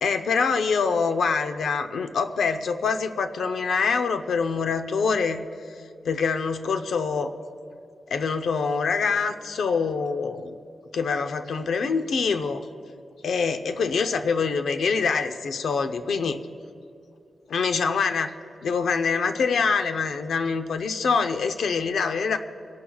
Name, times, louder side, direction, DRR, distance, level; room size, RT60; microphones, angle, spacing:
voice 1, 0.0-5.4 6.0-7.3 8.1-10.6 10.9-12.6 13.2-16.4 17.5-18.3 18.6-22.4, left 5 dB, 85° left, 8 dB, 0.7 m, -25 dB
30.0 x 11.5 x 2.4 m, 2.5 s
wide cardioid pair, 115°, 0 cm